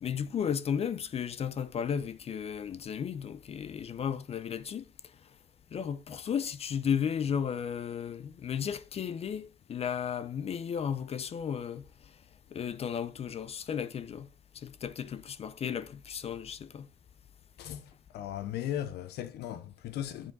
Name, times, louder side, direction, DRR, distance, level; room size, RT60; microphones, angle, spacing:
voice 1, 0.0-4.8 5.7-11.9 12.5-14.3 14.6-16.9, left 8 dB, 35° left, 0.4 m, -34 dB
voice 2, 17.6-20.3, left 11 dB, 75° left, 0.7 m, -37 dB
7.5 x 5.0 x 3.9 m
cardioid pair, 110°, 17 cm